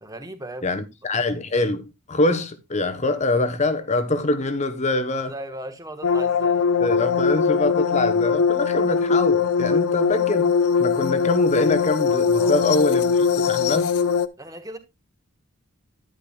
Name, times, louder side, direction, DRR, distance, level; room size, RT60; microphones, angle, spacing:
voice 1, 0.0-0.8 5.2-6.6 12.3-12.6 14.4-14.8, right 1 dB, 15° right, 1.1 m, -37 dB
voice 2, 0.6-5.3 6.8-10.5 10.8-13.9, left 2 dB, 30° left, 0.8 m, -24 dB
sound 1, 6.0-14.3, left 6 dB, 90° left, 0.6 m, -21 dB
10.0 x 10.0 x 2.2 m
head